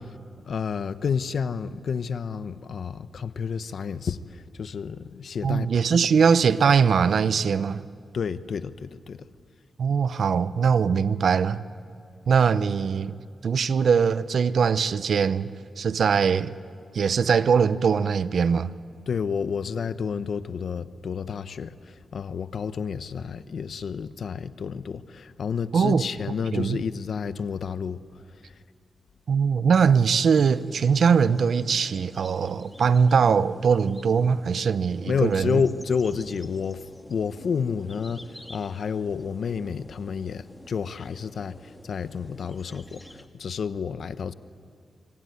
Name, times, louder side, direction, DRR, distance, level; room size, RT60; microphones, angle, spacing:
voice 1, 0.5-5.8 8.1-9.3 19.1-28.0 28.4-28.5 35.1-36.8 37.1-44.3, left 6 dB, 75° left, 0.9 m, -30 dB
voice 2, 5.4-7.8 9.8-11.6 12.3-13.1 13.4-16.6 16.9-18.7 25.7-26.1 26.5-26.8 29.3-35.6, right 6 dB, 75° right, 0.7 m, -21 dB
sound 1, 30.1-43.3, left 1 dB, 10° left, 1.7 m, -49 dB
25.0 x 24.0 x 9.5 m
wide cardioid pair, 95°, 0 cm